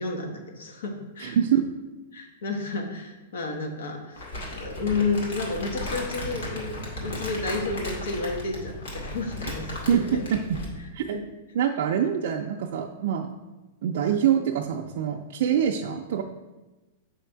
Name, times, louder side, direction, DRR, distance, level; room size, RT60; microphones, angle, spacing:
voice 1, 0.0-1.4 2.1-4.2 4.5-10.2, left 3 dB, 85° left, 3 dB, 1.1 m, -31 dB
voice 2, 1.2-1.6 9.9-10.0 10.3-10.4 10.9-11.2 11.5-13.3 13.8-16.2, right 9 dB, 50° right, 1 dB, 0.3 m, -25 dB
Crumpling crinkling, 4.2-10.8, left 1 dB, 65° left, 1.7 m, -35 dB
6.3 x 3.4 x 4.5 m, 1.1 s
supercardioid pair, 180°, 0 cm